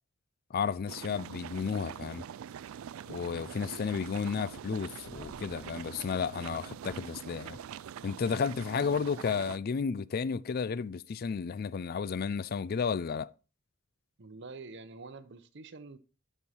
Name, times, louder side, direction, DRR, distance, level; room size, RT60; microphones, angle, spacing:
voice 1, 0.5-2.2 3.1-7.6 8.0-13.3, left 6 dB, 45° left, 0.4 m, -32 dB
sound 1, 0.9-9.6, right 8 dB, 75° right, 0.3 m, -44 dB
voice 2, 3.4-3.9 14.2-16.0, right 3 dB, 55° right, 0.8 m, -47 dB
sound 2, 4.9-6.5, left 1 dB, 85° left, 2.1 m, -56 dB
12.5 x 5.5 x 4.4 m
head